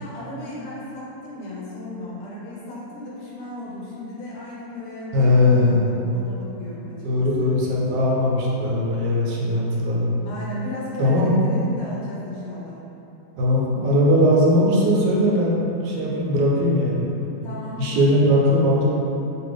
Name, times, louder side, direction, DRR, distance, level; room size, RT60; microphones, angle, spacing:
voice 1, 0.0-7.5 10.3-12.8 17.4-18.3, left 1 dB, 60° left, -7 dB, 0.7 m, -35 dB
voice 2, 5.1-5.9 7.0-10.1 11.0-11.4 13.4-17.0 17.8-18.8, left 1 dB, 75° right, -4 dB, 1.2 m, -19 dB
3.0 x 2.8 x 3.1 m, 2.9 s
omnidirectional pair, 1.9 m